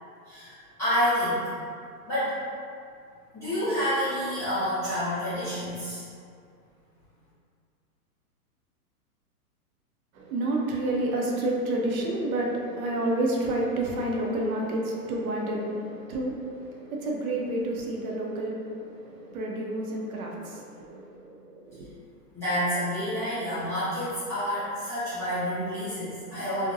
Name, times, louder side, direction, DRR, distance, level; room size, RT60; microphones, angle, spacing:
voice 1, 0.3-1.4 2.1-2.3 3.3-6.0 22.3-26.7, equal, 5° left, -17 dB, 0.5 m, -28 dB
voice 2, 10.1-21.9, right 1 dB, 65° right, -2 dB, 0.6 m, -30 dB
2.6 x 2.1 x 2.5 m, 2.3 s
hypercardioid pair, 140°, 46 cm